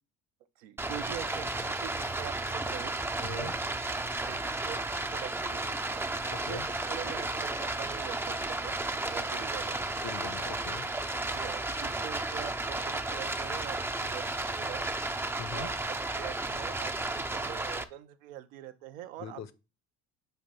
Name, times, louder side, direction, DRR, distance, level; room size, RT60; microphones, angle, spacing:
voice 1, 0.6-3.5 4.0-9.8 11.3-14.9 15.5-19.4, right 12 dB, 85° right, 0.7 m, -44 dB
Stream, 0.8-17.8, right 2 dB, 5° right, 0.4 m, -33 dB
voice 2, 3.2-3.5 6.5-6.7 10.0-10.9 15.4-15.7 19.2-19.5, left 8 dB, 45° left, 0.7 m, -41 dB
6.7 x 2.6 x 5.4 m
hypercardioid pair, 70°, 39 cm